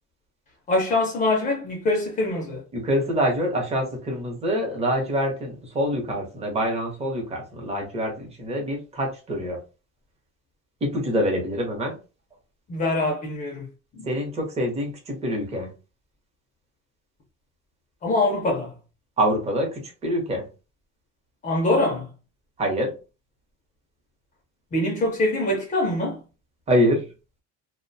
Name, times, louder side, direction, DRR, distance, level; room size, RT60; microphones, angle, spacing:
voice 1, 0.7-2.6 12.7-13.7 13.9-14.1 18.0-18.7 21.4-22.1 24.7-26.2, left 2 dB, 25° left, 0.5 m, -24 dB
voice 2, 2.7-9.6 10.8-11.9 14.0-15.7 19.2-20.5 22.6-22.9 26.7-27.1, equal, 20° right, 0.7 m, -25 dB
2.4 x 2.1 x 2.6 m
cardioid pair, 165°, 29 cm